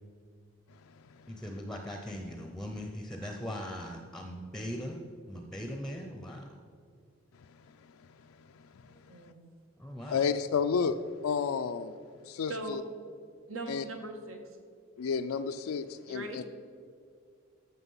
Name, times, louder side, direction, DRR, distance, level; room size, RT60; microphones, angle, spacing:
voice 1, 1.3-5.0 5.3-6.5 9.8-10.3, equal, ahead, 3 dB, 0.6 m, -40 dB
voice 2, 8.9-9.5 10.0-10.2 12.5-12.8 13.5-14.4 16.1-16.5, right 2 dB, 80° right, 4 dB, 1.5 m, -40 dB
voice 3, 10.1-11.0 11.2-11.9 12.2-12.8 13.7-13.8 15.0-16.5, left 6 dB, 90° left, 7 dB, 0.4 m, -31 dB
14.0 x 6.0 x 5.5 m, 2.3 s
head